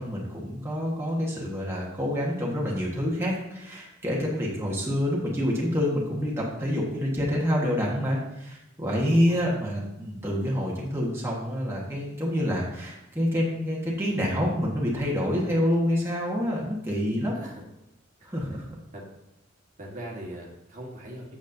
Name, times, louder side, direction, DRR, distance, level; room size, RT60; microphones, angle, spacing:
voice 1, 0.0-17.5 18.2-18.6, equal, 15° right, -4 dB, 1.3 m, -27 dB
voice 2, 9.1-9.5 17.3-17.6 18.9-19.0 19.8-21.4, right 1 dB, 40° right, -2 dB, 1.4 m, -40 dB
8.2 x 7.1 x 2.6 m, 0.89 s
head